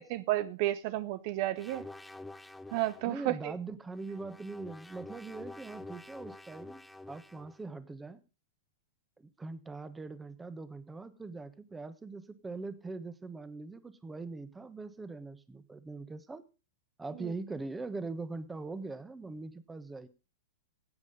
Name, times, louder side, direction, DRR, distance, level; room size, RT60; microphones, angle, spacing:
voice 1, 0.0-1.9 2.7-3.5 17.2-17.3, right 15 dB, 50° right, 0.6 m, -32 dB
sound 1, 1.6-3.2 3.9-7.6, left 2 dB, 5° left, 0.7 m, -48 dB
voice 2, 3.1-6.8 7.1-8.2 9.2-16.4 17.0-20.1, right 3 dB, 10° right, 1.3 m, -42 dB
16.0 x 8.3 x 5.4 m
hypercardioid pair, 105°, 0 cm